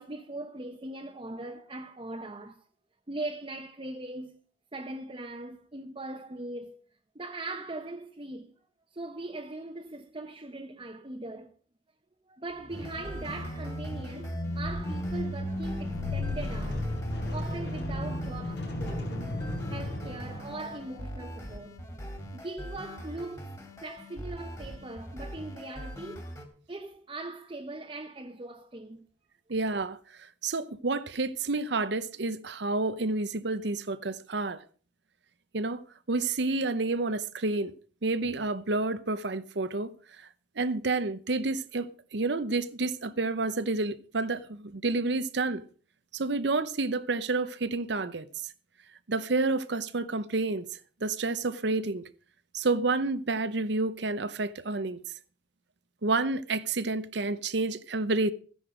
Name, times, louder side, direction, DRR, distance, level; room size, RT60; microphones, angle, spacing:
voice 1, 0.0-2.6 3.1-4.4 4.7-6.8 7.1-8.5 8.9-11.5 12.3-16.9 17.3-19.4 19.7-21.8 22.3-26.3 26.7-29.1, right 2 dB, 30° right, 1.0 m, -40 dB
sound 1, 12.5-21.3, left 1 dB, 65° left, 4.5 m, -35 dB
sound 2, 12.7-26.5, equal, 20° left, 2.7 m, -42 dB
voice 2, 29.5-30.0 30.4-34.6 35.5-35.8 36.1-37.7 38.0-39.9 40.6-45.6 46.1-48.3 49.1-52.0 52.5-55.0 56.0-58.3, right 3 dB, 65° right, 0.8 m, -29 dB
14.0 x 10.5 x 5.0 m
head